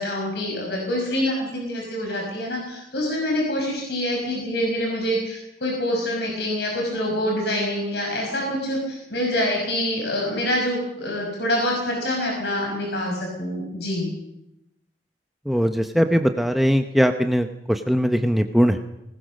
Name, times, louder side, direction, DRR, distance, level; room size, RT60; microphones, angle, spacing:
voice 1, 0.0-14.1, left 1 dB, 70° left, 0 dB, 5.8 m, -26 dB
voice 2, 15.5-18.8, equal, ahead, 6 dB, 0.8 m, -20 dB
22.0 x 19.5 x 6.4 m, 0.86 s
head